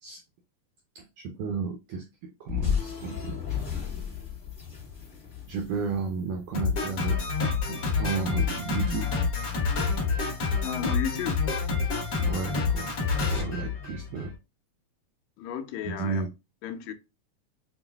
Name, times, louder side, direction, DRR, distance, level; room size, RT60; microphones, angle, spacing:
voice 1, 0.9-2.0 2.4-3.4 5.5-7.2 7.7-9.1 12.1-12.9 13.3-14.3 15.8-16.3, right 5 dB, 85° right, 1.4 m, -33 dB
sound 1, 2.5-6.9, left 8 dB, 30° left, 1.0 m, -33 dB
Drum kit, 6.5-14.3, left 4 dB, 50° left, 1.3 m, -28 dB
voice 2, 10.6-11.4 15.4-16.2 16.6-16.9, left 9 dB, 80° left, 1.6 m, -33 dB
6.9 x 2.4 x 2.3 m
omnidirectional pair, 3.6 m